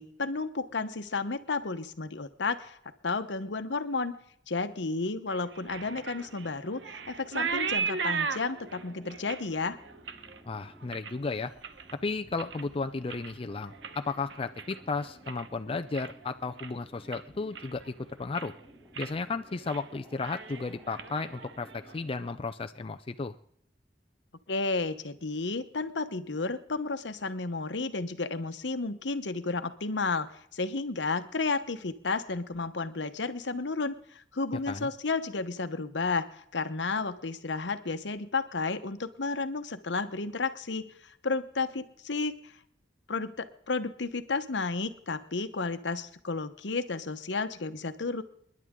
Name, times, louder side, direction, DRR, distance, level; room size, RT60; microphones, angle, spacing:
voice 1, 0.0-2.8 3.0-4.1 4.5-9.8 24.5-42.3 43.1-48.2, left 3 dB, 75° left, 10 dB, 1.0 m, -32 dB
sound 1, 5.3-11.9 12.3-12.8 13.0-15.5 15.8-16.3 16.6-16.7 17.1-17.9 18.2-18.6 18.9-19.2 19.5-19.8 20.1-22.0, right 5 dB, 80° right, 1.0 m, -37 dB
sound 2, 5.8-22.3, equal, 5° right, 3.0 m, -56 dB
voice 2, 10.5-11.5 12.0-18.5 19.0-23.4 34.7-34.9, left 4 dB, 30° left, 7 dB, 0.5 m, -34 dB
28.5 x 11.0 x 3.7 m, 0.69 s
head